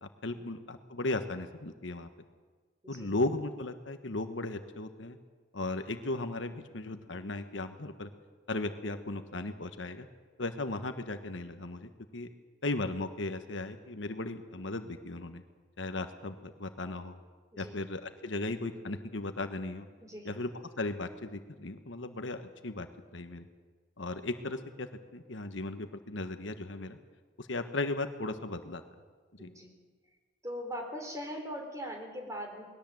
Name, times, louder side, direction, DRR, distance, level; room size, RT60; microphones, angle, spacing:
voice 1, 0.0-2.1 2.9-5.2 5.5-8.1 8.5-10.1 10.4-12.3 12.6-15.4 15.8-17.2 17.6-19.9 20.2-20.5 20.8-22.9 23.1-23.5 24.0-27.0 27.4-28.8 29.3-29.5, left 2 dB, 75° left, 8 dB, 1.3 m, -36 dB
voice 2, 20.0-20.4 29.4-29.7 30.4-32.6, equal, 15° right, 2 dB, 4.0 m, -41 dB
20.5 x 18.0 x 7.8 m, 1.4 s
head